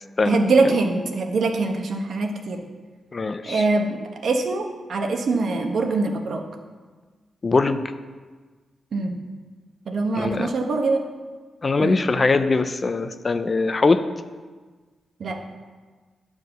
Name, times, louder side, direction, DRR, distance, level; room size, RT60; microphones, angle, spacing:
voice 1, 0.2-2.6 3.4-6.4 8.9-9.2 9.9-11.0 11.8-12.0 15.2-15.4, right 3 dB, 65° right, 4 dB, 1.1 m, -23 dB
voice 2, 3.1-3.6 7.4-7.8 10.2-10.5 11.6-14.0, left 3 dB, 35° left, 10 dB, 0.5 m, -21 dB
9.6 x 4.8 x 6.6 m, 1.4 s
cardioid pair, 100°, 0 cm